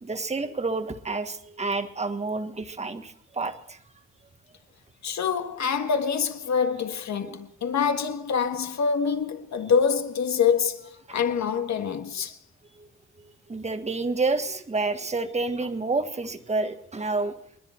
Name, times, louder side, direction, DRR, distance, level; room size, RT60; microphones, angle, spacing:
voice 1, 0.0-3.8 11.8-11.9 12.8-12.9 13.2-17.3, right 3 dB, 20° right, 1.5 m, -29 dB
voice 2, 5.0-12.4, left 6 dB, 60° left, 1.8 m, -25 dB
29.5 x 10.5 x 4.4 m
cardioid pair, 85°, 31 cm